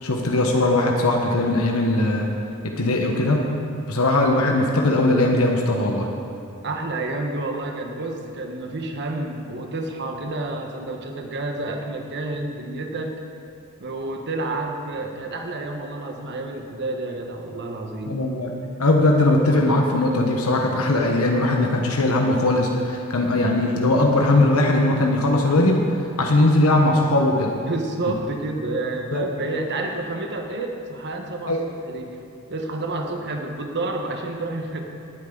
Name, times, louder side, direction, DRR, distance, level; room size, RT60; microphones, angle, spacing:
voice 1, 0.0-2.3 2.8-3.4 3.9-6.1 18.1-18.5 18.8-25.8 26.2-27.5 29.1-29.2 31.5-31.6, left 2 dB, 70° left, 1 dB, 1.2 m, -19 dB
voice 2, 6.6-13.1 13.8-18.2 27.6-31.6 31.8-32.2 32.5-34.8, right 2 dB, 50° right, 3 dB, 1.3 m, -29 dB
18.5 x 9.3 x 4.0 m, 2.5 s
head